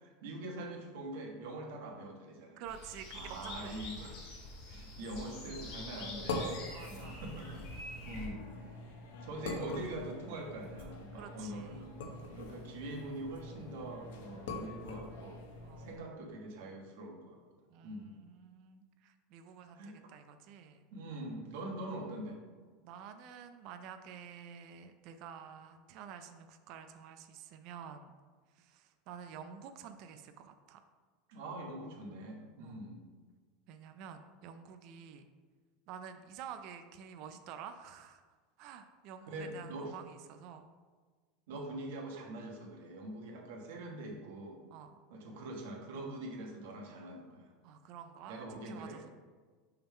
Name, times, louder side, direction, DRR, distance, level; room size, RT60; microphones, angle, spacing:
voice 1, 0.0-2.6 3.1-4.2 4.7-7.7 8.0-11.9 12.3-15.4 15.8-17.4 17.8-18.1 19.7-19.9 20.9-22.4 31.3-33.0 39.3-39.9 41.5-44.6 45.1-47.5 48.3-49.1, right 1 dB, 75° right, 1 dB, 1.3 m, -44 dB
voice 2, 2.6-3.9 6.7-7.2 7.8-8.5 8.8-9.0 11.1-11.9 15.6-16.0 17.7-20.8 22.8-28.2 28.5-30.8 32.6-32.8 33.7-35.3 35.9-38.2 38.6-40.7 41.5-41.7 44.7-45.0 47.6-49.1, right 8 dB, 50° right, 8 dB, 0.4 m, -50 dB
sound 1, 2.7-8.3, left 2 dB, 55° left, 1.7 m, -46 dB
sound 2, 5.5-16.0, left 2 dB, 85° left, 1.0 m, -44 dB
5.6 x 3.6 x 5.5 m, 1.4 s
supercardioid pair, 160°, 0 cm